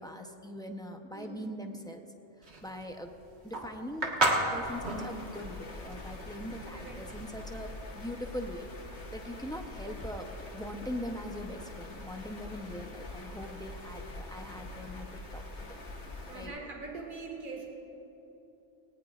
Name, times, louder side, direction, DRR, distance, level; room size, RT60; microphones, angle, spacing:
voice 1, 0.0-2.1 2.4-3.1 3.4-8.7 8.9-15.8 16.3-16.5, equal, 5° left, 3 dB, 0.6 m, -42 dB
voice 2, 1.1-1.6 6.7-7.0 16.3-17.7, right 3 dB, 45° right, -1 dB, 2.0 m, -42 dB
sound 1, 2.4-7.5, right 2 dB, 65° right, 1.8 m, -32 dB
sound 2, 4.6-16.5, left 2 dB, 65° left, 1.6 m, -44 dB
18.5 x 18.5 x 2.5 m, 3.0 s
omnidirectional pair, 1.2 m